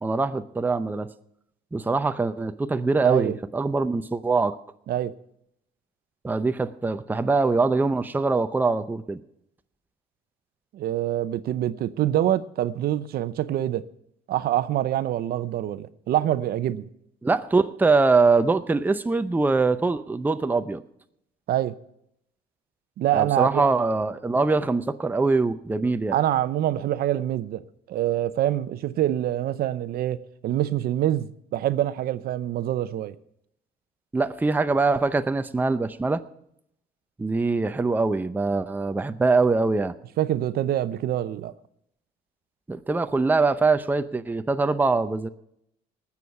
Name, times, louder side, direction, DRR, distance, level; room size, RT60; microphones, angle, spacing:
voice 1, 0.0-1.1 1.7-4.6 6.2-9.2 17.2-20.8 23.1-26.2 34.1-36.2 37.2-39.9 42.7-45.3, right 3 dB, 10° right, 0.6 m, -23 dB
voice 2, 3.0-3.4 4.9-5.1 10.7-13.8 14.3-16.9 21.5-21.7 23.0-23.6 26.1-27.6 27.9-33.1 40.2-41.5, right 12 dB, 65° right, 0.7 m, -25 dB
19.0 x 7.2 x 5.9 m
cardioid pair, 110°, 17 cm